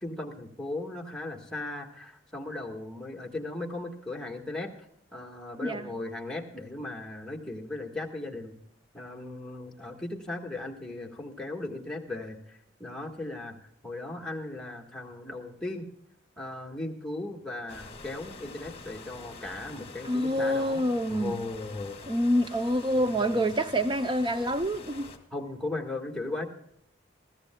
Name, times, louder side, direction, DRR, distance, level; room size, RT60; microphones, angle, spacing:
voice 1, 0.0-4.7 5.1-8.5 8.9-13.6 13.8-15.8 16.4-20.8 21.1-22.0 22.9-23.5 25.3-26.4, left 2 dB, 5° left, 1.6 m, -37 dB
sound 1, 17.7-25.2, left 3 dB, 30° left, 1.7 m, -46 dB
voice 2, 20.0-21.4 22.1-25.1, equal, 25° right, 0.5 m, -27 dB
21.5 x 14.5 x 2.2 m
head